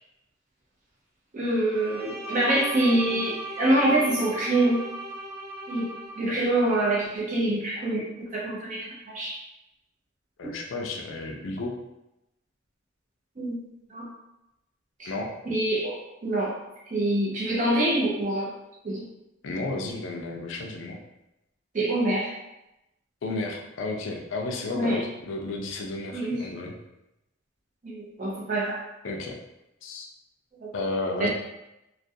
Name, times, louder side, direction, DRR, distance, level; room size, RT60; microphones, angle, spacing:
voice 1, 1.3-4.8 5.7-5.9 6.2-9.4 13.4-13.6 13.9-14.1 15.0-15.1 15.5-16.0 16.2-16.5 16.9-18.5 18.8-19.1 21.7-22.3 24.7-25.0 26.1-26.4 27.8-28.8 30.6-30.7 31.2-31.3, right 1 dB, 35° right, -5 dB, 0.5 m, -25 dB
Bowed string instrument, 1.7-6.3, right 1 dB, 5° right, 1.1 m, -37 dB
voice 2, 10.4-11.8 15.0-15.3 19.4-21.0 23.2-26.7 29.0-29.4 29.8-30.1 30.7-31.3, left 2 dB, 60° left, 1 dB, 0.4 m, -32 dB
2.3 x 2.2 x 2.6 m, 0.91 s
head